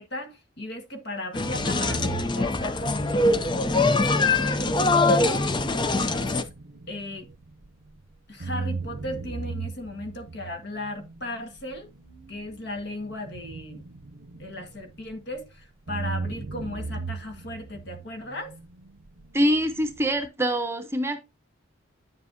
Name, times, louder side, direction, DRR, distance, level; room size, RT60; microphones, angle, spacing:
voice 1, 0.0-3.4 3.9-5.5 5.9-6.5 6.9-7.3 8.3-11.9 12.3-13.9 14.4-18.6, left 1 dB, 55° left, 1.6 m, -36 dB
sound 1, 1.3-6.4, left 2 dB, 20° left, 0.5 m, -23 dB
sound 2, 1.4-8.0 8.4-15.5 15.9-20.3, right 4 dB, 70° right, 0.7 m, -38 dB
voice 2, 19.3-21.2, equal, 10° right, 0.8 m, -24 dB
9.4 x 7.4 x 2.8 m
head